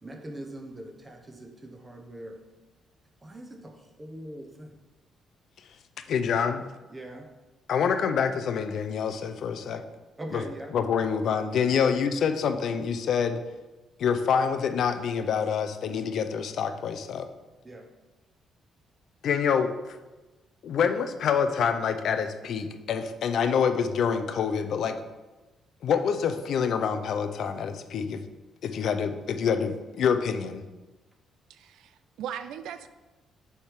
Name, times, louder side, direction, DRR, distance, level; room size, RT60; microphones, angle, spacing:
voice 1, 0.0-2.4 3.2-4.8 6.9-7.3 10.2-10.7 11.8-11.9 17.6-17.9, right 1 dB, 20° right, 3 dB, 1.1 m, -41 dB
voice 2, 6.1-6.7 7.7-9.8 10.3-10.4 10.7-13.4 14.0-17.3 19.2-19.7 20.6-25.0 25.8-28.2 28.6-30.6, left 7 dB, 65° left, 9 dB, 0.5 m, -26 dB
voice 3, 31.5-32.9, right 9 dB, 85° right, 11 dB, 0.3 m, -38 dB
7.1 x 3.5 x 4.8 m, 1.1 s
cardioid pair, 90°, 0 cm